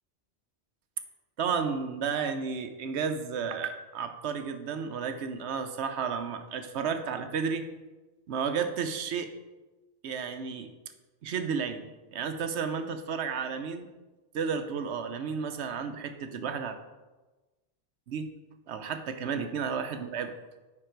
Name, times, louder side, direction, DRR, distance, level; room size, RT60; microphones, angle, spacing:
voice 1, 1.4-7.7 8.3-9.3 10.0-10.7 11.2-13.9 14.3-16.8 18.1-18.3 18.7-20.3, right 6 dB, 90° right, 7 dB, 1.0 m, -32 dB
9.7 x 3.9 x 4.5 m, 1.2 s
omnidirectional pair, 1.1 m